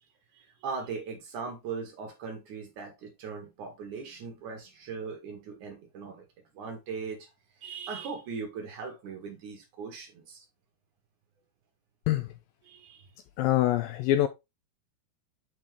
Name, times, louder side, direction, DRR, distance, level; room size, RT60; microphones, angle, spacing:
voice 1, 0.3-6.3 6.5-7.3 7.6-10.5 12.6-13.1, right 5 dB, 60° right, 2.5 m, -39 dB
voice 2, 13.4-14.3, left 13 dB, 85° left, 2.0 m, -24 dB
8.2 x 5.4 x 3.3 m
omnidirectional pair, 4.5 m